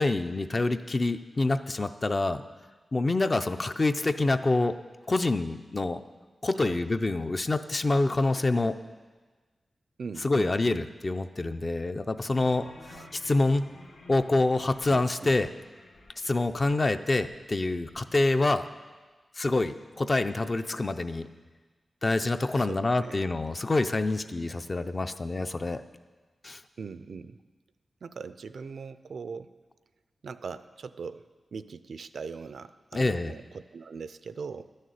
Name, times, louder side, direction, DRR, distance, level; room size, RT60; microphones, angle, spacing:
voice 1, 0.0-2.4 2.9-4.7 5.1-6.0 6.4-8.7 10.2-12.7 13.1-13.7 14.1-15.5 16.2-18.7 19.4-21.3 22.0-25.8 26.4-26.6 32.9-33.3, left 2 dB, 30° left, 9 dB, 0.5 m, -26 dB
voice 2, 6.5-6.8 10.0-10.8 12.9-13.3 14.9-15.3 22.5-23.2 26.8-27.4 28.0-29.5 30.2-34.7, right 5 dB, 70° right, 13 dB, 0.4 m, -41 dB
sound 1, 12.3-18.0, left 2 dB, 75° left, 1.6 m, -53 dB
12.0 x 6.5 x 9.3 m, 1.3 s
wide cardioid pair, 150°, 0 cm